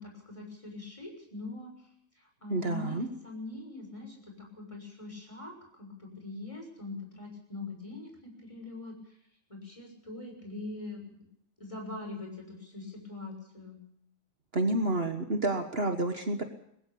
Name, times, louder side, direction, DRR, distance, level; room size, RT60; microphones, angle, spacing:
voice 1, 0.0-1.7 2.2-9.1 9.5-11.0 11.6-13.8, left 2 dB, 25° left, 2 dB, 6.6 m, -43 dB
voice 2, 2.5-3.1 14.5-16.4, right 2 dB, 50° right, 6 dB, 1.7 m, -29 dB
21.0 x 15.5 x 8.5 m, 0.74 s
omnidirectional pair, 1.4 m